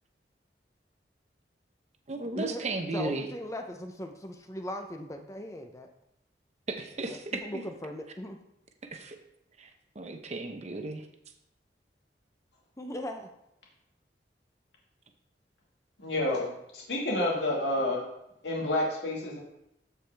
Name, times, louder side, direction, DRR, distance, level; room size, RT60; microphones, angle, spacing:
voice 1, 2.1-3.2 6.7-7.4 8.9-9.2 9.6-9.7 10.0-11.0, right 3 dB, 40° right, 5 dB, 0.8 m, -34 dB
voice 2, 2.9-5.9 7.1-8.4 12.8-13.3, left 1 dB, 20° left, 4 dB, 0.7 m, -38 dB
voice 3, 16.0-18.0 18.4-19.4, left 1 dB, 80° left, -3 dB, 2.0 m, -29 dB
13.5 x 4.8 x 3.4 m, 0.82 s
head